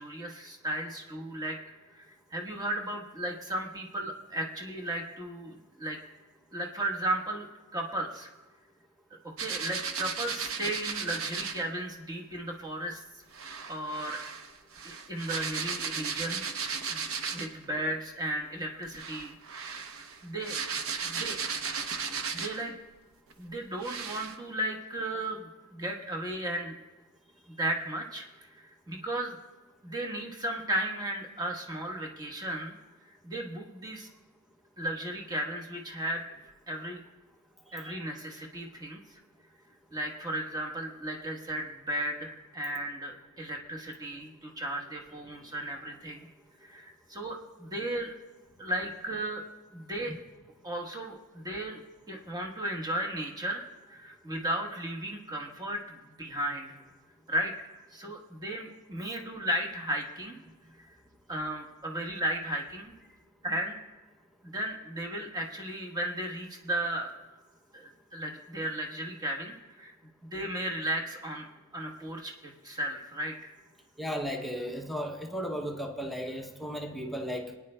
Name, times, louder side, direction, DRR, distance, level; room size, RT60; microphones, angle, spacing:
voice 1, 0.0-1.6 1.9-2.0 2.3-6.0 6.5-7.5 7.7-8.3 9.1-13.0 13.4-14.2 14.8-16.4 16.9-17.0 17.3-19.9 20.2-20.6 21.0-21.4 22.3-22.8 23.4-26.8 27.6-29.4 29.8-32.8 33.1-34.1 34.8-36.2 36.7-37.0 37.7-39.2 39.9-46.3 46.6-48.1 48.6-49.4 49.7-50.1 50.6-51.8 52.1-56.8 57.3-57.5 57.9-60.4 61.3-62.9 63.4-63.8 64.4-67.2 67.7-69.9 70.3-71.5 71.7-73.5, right 1 dB, 20° right, 0 dB, 1.1 m, -35 dB
sound 1, 9.4-11.6 13.3-17.6 18.8-22.7 23.3-23.4 23.8-24.4, right 6 dB, 65° right, 0.8 m, -35 dB
voice 2, 37.7-38.0 50.0-50.2 74.0-77.5, equal, ahead, 3 dB, 0.6 m, -35 dB
25.0 x 9.6 x 2.2 m, 1.2 s
head